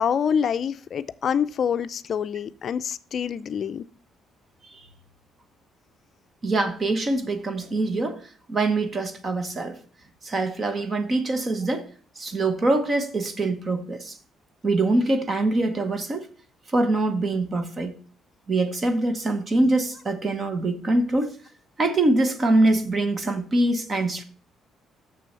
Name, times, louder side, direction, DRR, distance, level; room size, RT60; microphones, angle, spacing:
voice 1, 0.0-3.8, left 7 dB, 45° left, 0.5 m, -26 dB
voice 2, 6.4-8.2 8.5-9.8 10.2-11.9 12.2-14.2 14.6-16.3 16.7-17.9 18.5-21.4 21.8-24.2, right 2 dB, 30° right, 1.0 m, -24 dB
6.9 x 6.4 x 5.4 m
cardioid pair, 130°, 0 cm